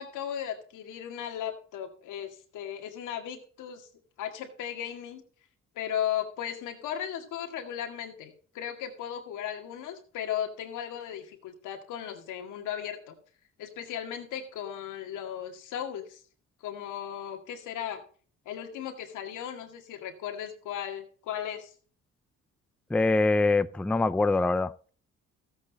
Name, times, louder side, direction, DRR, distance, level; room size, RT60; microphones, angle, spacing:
voice 1, 0.0-3.9 4.2-5.2 5.8-13.2 13.6-16.2 16.6-18.0 18.5-21.7, left 9 dB, 90° left, 2.0 m, -36 dB
voice 2, 22.9-24.9, left 3 dB, 5° left, 0.4 m, -24 dB
14.0 x 8.2 x 4.0 m
cardioid pair, 90°, 30 cm